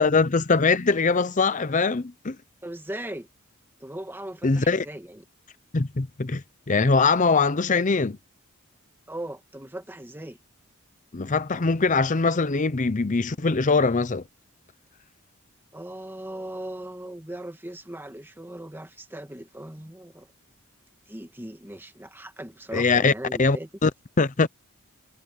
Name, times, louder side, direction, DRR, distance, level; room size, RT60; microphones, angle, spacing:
voice 1, 0.0-2.4 4.4-4.8 5.7-8.2 11.1-14.2 22.7-23.1 23.4-23.6 23.8-23.9 24.2-24.5, left 4 dB, 35° left, 0.7 m, -22 dB
voice 2, 2.6-3.3 3.8-5.2 9.1-10.4 15.7-20.3 21.1-23.7, right 1 dB, 10° right, 1.9 m, -38 dB
head